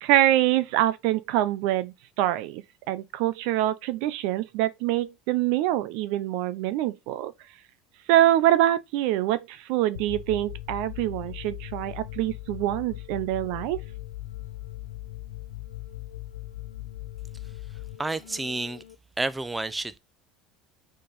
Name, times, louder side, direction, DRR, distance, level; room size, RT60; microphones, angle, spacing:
voice 1, 0.0-7.3 8.1-13.8, right 14 dB, 70° right, 0.5 m, -25 dB
sound 1, 10.0-19.0, left 15 dB, 85° left, 0.5 m, -39 dB
voice 2, 18.0-18.8 19.2-20.0, right 2 dB, 15° right, 0.7 m, -30 dB
6.6 x 3.7 x 5.2 m
hypercardioid pair, 85°, 0 cm